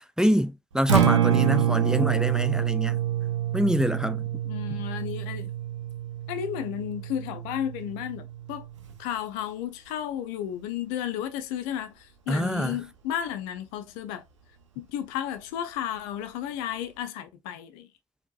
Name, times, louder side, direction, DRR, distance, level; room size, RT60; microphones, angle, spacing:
voice 1, 0.0-3.0 3.5-4.3 12.3-12.8, equal, 5° right, 0.5 m, -25 dB
Acoustic guitar, 0.8-8.9, right 10 dB, 85° right, 0.7 m, -27 dB
voice 2, 4.4-5.5 6.3-8.7 9.0-14.2 14.8-17.9, left 10 dB, 70° left, 0.6 m, -33 dB
4.5 x 3.6 x 2.3 m
figure-of-eight pair, 45°, 15 cm